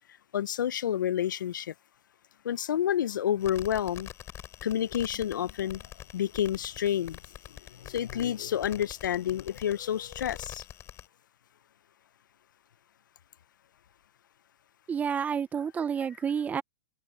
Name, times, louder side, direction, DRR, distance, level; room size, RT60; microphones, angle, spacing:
voice 1, 0.3-1.7 2.4-4.1 4.6-5.8 6.1-7.2 7.8-10.6, left 10 dB, 90° left, 0.6 m, -29 dB
sound 1, 3.4-11.1, left 11 dB, 25° left, 4.1 m, -46 dB
voice 2, 14.9-16.6, right 7 dB, 15° right, 0.5 m, -29 dB
hypercardioid pair, 135°, 10 cm